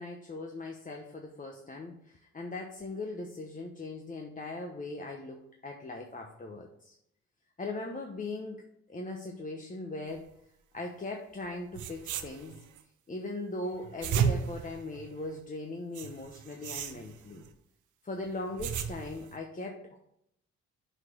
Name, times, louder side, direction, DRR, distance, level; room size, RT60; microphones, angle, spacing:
voice 1, 0.0-6.9 7.6-10.3 10.7-12.5 13.1-17.4 18.0-20.0, left 2 dB, 25° left, 1 dB, 1.1 m, -39 dB
sound 1, 11.4-11.5 11.7-12.8 13.7-15.4 15.9-17.5 18.3-19.3, right 7 dB, 80° right, 0.9 m, -34 dB
6.3 x 4.8 x 6.4 m, 0.76 s
cardioid pair, 90°, 30 cm